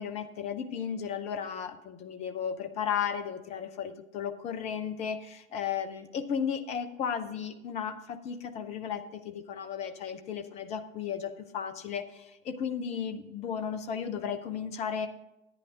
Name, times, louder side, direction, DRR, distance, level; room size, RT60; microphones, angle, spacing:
voice 1, 0.0-15.1, left 7 dB, 15° left, 9 dB, 0.6 m, -34 dB
10.5 x 9.8 x 3.6 m, 0.89 s
figure-of-eight pair, 105°, 40 cm